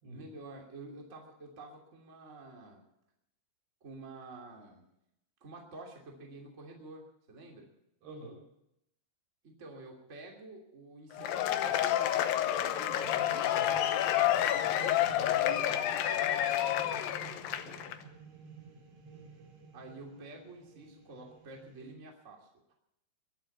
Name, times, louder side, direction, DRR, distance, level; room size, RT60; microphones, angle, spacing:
voice 1, 0.1-2.8 3.8-4.8 5.4-7.7 9.4-12.8 19.7-22.5, right 2 dB, 20° right, 0 dB, 2.6 m, -49 dB
voice 2, 8.0-8.4 13.3-13.9 15.0-16.4, right 2 dB, 75° right, 0 dB, 7.4 m, -48 dB
Cheering / Applause / Crowd, 11.1-18.0, left 12 dB, 75° left, 2.4 m, -29 dB
sound 1, 11.1-21.9, right 4 dB, 45° right, 3.0 m, -52 dB
23.0 x 8.3 x 7.1 m, 0.79 s
omnidirectional pair, 4.6 m